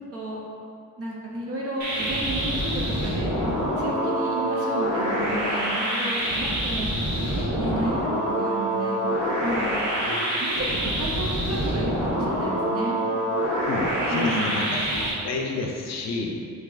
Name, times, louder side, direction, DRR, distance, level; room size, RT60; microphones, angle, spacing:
voice 1, 0.1-0.4 1.0-3.4 3.8-6.9 7.5-7.9 8.3-9.0 9.4-13.0 14.1-14.7, right 1 dB, 45° right, -4 dB, 0.5 m, -32 dB
sound 1, 1.8-15.1, right 1 dB, 60° right, 1.3 m, -26 dB
voice 2, 13.6-16.4, left 3 dB, 55° left, 1 dB, 0.5 m, -31 dB
5.9 x 2.7 x 2.4 m, 2.4 s
wide cardioid pair, 170°, 32 cm